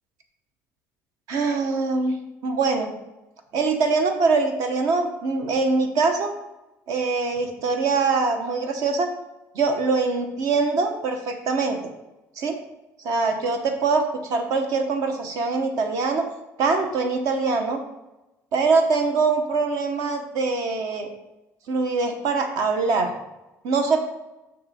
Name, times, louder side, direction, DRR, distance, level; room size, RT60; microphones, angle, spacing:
voice 1, 1.3-2.1 2.4-2.9 3.5-6.3 6.9-9.1 9.5-11.9 12.4-12.5 13.0-16.3 16.6-17.8 18.5-21.1 21.7-23.1 23.6-24.0, right 4 dB, 60° right, 5 dB, 0.9 m, -23 dB
6.6 x 6.0 x 4.2 m, 0.97 s
cardioid pair, 175°, 7 cm